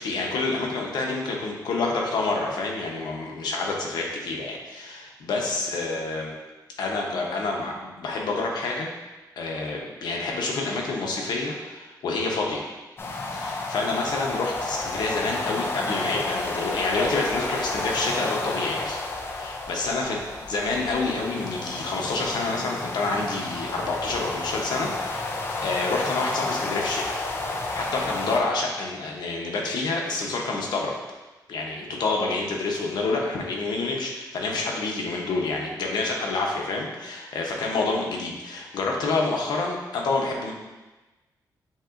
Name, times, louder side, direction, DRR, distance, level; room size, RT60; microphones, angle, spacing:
voice 1, 0.0-6.3 6.8-8.9 9.4-12.7 13.3-19.0 19.3-20.2 20.5-27.0 27.7-30.9 31.5-40.5, left 3 dB, 90° left, 0 dB, 0.8 m, -28 dB
sound 1, 13.0-28.4, left 2 dB, 35° left, 0.5 m, -31 dB
7.2 x 2.9 x 2.5 m, 1.1 s
wide cardioid pair, 170°, 7 cm